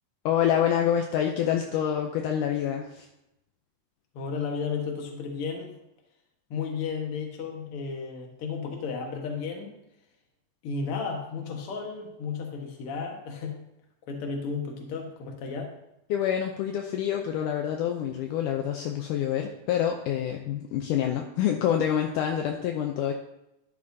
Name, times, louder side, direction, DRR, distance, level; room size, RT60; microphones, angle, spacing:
voice 1, 0.3-3.1 16.1-23.1, left 9 dB, 80° left, 2 dB, 2.0 m, -27 dB
voice 2, 4.1-5.8 6.5-9.7 10.6-13.6 14.1-15.7, left 5 dB, 50° left, 1 dB, 1.9 m, -33 dB
12.0 x 8.5 x 2.8 m, 0.87 s
omnidirectional pair, 4.1 m